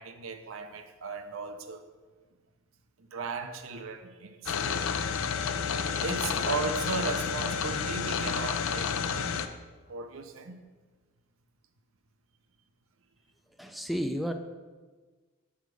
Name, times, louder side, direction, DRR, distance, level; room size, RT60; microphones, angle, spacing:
voice 1, 0.0-1.9 3.0-4.9 6.0-9.4 9.9-10.6, right 4 dB, 90° right, 0.6 m, -36 dB
sound 1, 4.5-9.5, left 6 dB, 80° left, 0.4 m, -30 dB
voice 2, 13.6-14.3, equal, ahead, 0.3 m, -31 dB
7.8 x 3.5 x 6.2 m
head